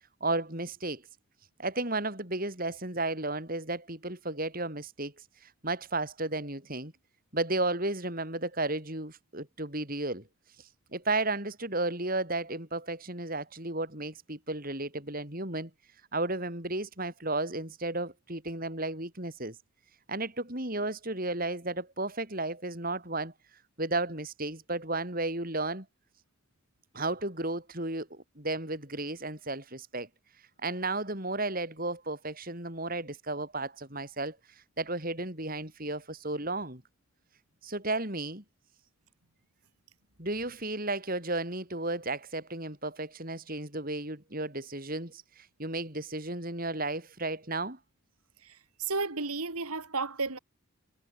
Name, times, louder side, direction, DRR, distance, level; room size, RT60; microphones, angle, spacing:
voice 1, 0.2-1.0 1.6-5.1 5.4-6.9 7.3-10.3 10.9-15.7 16.1-19.6 20.1-23.3 23.8-25.9 26.9-30.1 30.6-34.4 34.8-36.8 37.6-38.4 40.2-47.8, right 2 dB, 40° right, 5.5 m, -33 dB
voice 2, 48.4-50.4, right 3 dB, 90° right, 3.3 m, -33 dB
head